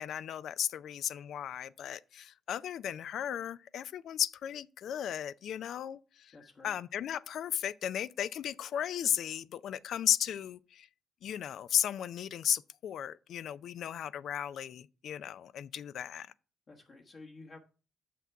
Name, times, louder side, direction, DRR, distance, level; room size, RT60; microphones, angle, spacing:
voice 1, 0.0-6.4 6.6-10.9 11.2-16.3, left 10 dB, 70° left, 0.4 m, -35 dB
voice 2, 6.3-6.8 16.7-17.6, left 3 dB, 45° left, 1.1 m, -51 dB
7.1 x 5.9 x 4.7 m
cardioid pair, 90°, 0 cm